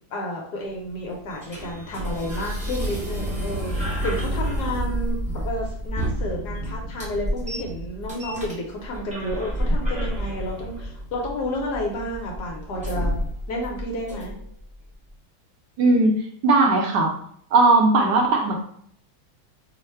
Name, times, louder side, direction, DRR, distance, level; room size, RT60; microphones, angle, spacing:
voice 1, 0.1-5.2 5.4-13.1 13.5-14.3, left 1 dB, 70° left, -1 dB, 1.1 m, -31 dB
sound 1, 0.6-14.6, equal, 10° right, 0.4 m, -29 dB
voice 2, 15.8-16.1 16.4-17.1 17.5-18.6, right 3 dB, 70° right, 1 dB, 1.1 m, -17 dB
3.2 x 2.1 x 4.2 m, 0.63 s
omnidirectional pair, 2.1 m